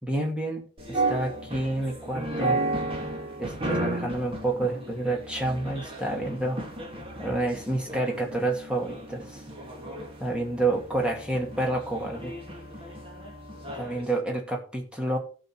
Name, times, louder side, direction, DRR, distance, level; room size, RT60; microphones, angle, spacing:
voice 1, 0.0-2.6 3.4-6.6 7.2-9.4 10.2-12.4 13.7-15.2, right 2 dB, 5° right, 1 dB, 2.3 m, -29 dB
sound 1, 0.8-14.1, right 2 dB, 25° right, 2.3 m, -34 dB
16.0 x 5.5 x 4.6 m, 0.39 s
head